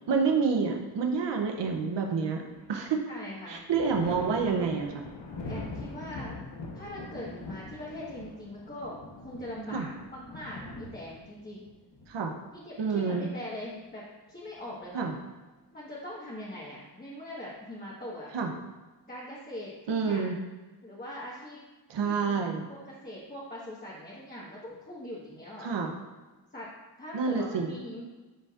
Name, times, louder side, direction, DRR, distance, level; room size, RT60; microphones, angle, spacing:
voice 1, 0.1-2.4 2.7-3.0 3.5-5.0 9.7-9.9 12.1-12.3 12.8-13.3 14.9-15.1 18.3-18.5 19.9-20.4 21.9-22.7 25.6-25.9 27.1-27.7, right 5 dB, 80° right, 3 dB, 0.8 m, -28 dB
Thunder, 2.1-2.9 3.2-12.8 14.3-15.1, left 2 dB, 80° left, 1.1 m, -43 dB
voice 2, 3.0-3.6 5.4-6.4 6.7-11.6 12.5-14.0 14.3-15.0 15.7-18.3 19.1-20.3 20.8-21.6 22.0-25.7 26.5-26.7 27.0-28.0, left 1 dB, 20° left, -7 dB, 1.5 m, -42 dB
9.9 x 5.2 x 2.5 m, 1.2 s
wide cardioid pair, 80°, 42 cm